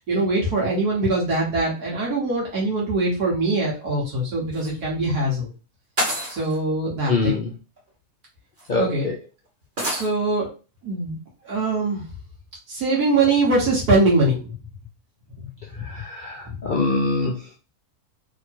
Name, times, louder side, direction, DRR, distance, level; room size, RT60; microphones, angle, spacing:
voice 1, 0.1-5.5 6.3-7.4 8.8-9.1 9.8-10.5 10.8-11.2 11.5-12.0 12.7-14.5 15.4-15.5 15.8-15.9 16.5-16.6, right 2 dB, 70° right, -4 dB, 1.8 m, -22 dB
sound 1, 4.5-4.7 6.0-6.6 7.8-7.9 8.6-8.7 9.8-10.1, equal, 30° right, 1.6 m, -27 dB
voice 2, 7.1-7.5 8.7-9.2 15.8-17.6, left 3 dB, 75° left, 0 dB, 0.4 m, -24 dB
3.6 x 2.9 x 4.4 m, 0.33 s
omnidirectional pair, 1.7 m